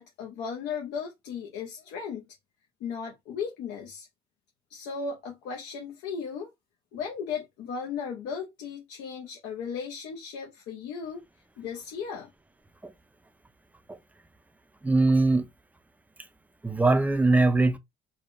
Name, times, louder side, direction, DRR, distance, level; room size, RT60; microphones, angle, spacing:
voice 1, 0.0-2.3 2.8-4.1 4.7-6.5 6.9-11.2 11.6-12.3, left 6 dB, 90° left, 0.6 m, -36 dB
voice 2, 14.8-15.5 16.6-17.8, right 2 dB, 10° right, 0.3 m, -21 dB
3.4 x 2.1 x 2.4 m
cardioid pair, 110°, 17 cm